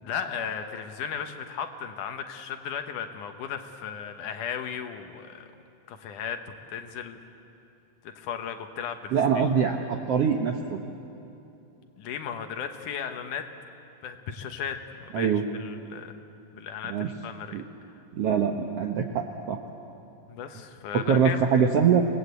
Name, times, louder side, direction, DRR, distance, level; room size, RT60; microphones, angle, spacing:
voice 1, 0.0-5.5 5.9-7.2 8.2-9.4 12.0-13.5 14.0-14.8 15.0-15.3 15.5-16.1 16.5-17.6 20.3-21.7, left 7 dB, 70° left, 6 dB, 2.5 m, -35 dB
voice 2, 9.1-10.8 15.1-15.4 16.9-17.1 17.5-17.6 18.1-19.6 20.9-22.0, right 7 dB, 70° right, 3 dB, 1.4 m, -23 dB
27.0 x 20.0 x 8.2 m, 2.8 s
omnidirectional pair, 4.1 m